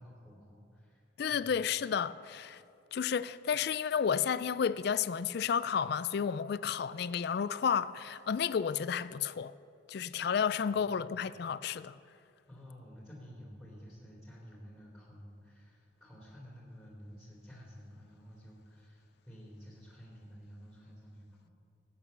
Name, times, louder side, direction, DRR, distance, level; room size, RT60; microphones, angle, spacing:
voice 1, 0.0-1.0 1.3-1.5 10.6-11.4 12.5-21.5, equal, ahead, 2.6 m, -52 dB
voice 2, 1.2-2.6 2.9-9.5 9.9-12.0, left 7 dB, 55° left, 0.3 m, -32 dB
14.5 x 8.7 x 6.7 m
head